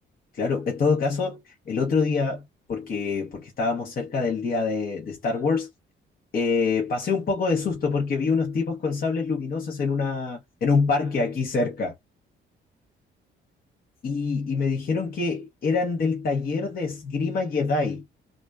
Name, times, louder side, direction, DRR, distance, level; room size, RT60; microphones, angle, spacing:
voice 1, 0.3-2.4 2.7-5.7 6.3-11.9 14.0-18.0, left 4 dB, 50° left, 0.8 m, -25 dB
2.4 x 2.3 x 2.2 m
cardioid pair, 90°, 20 cm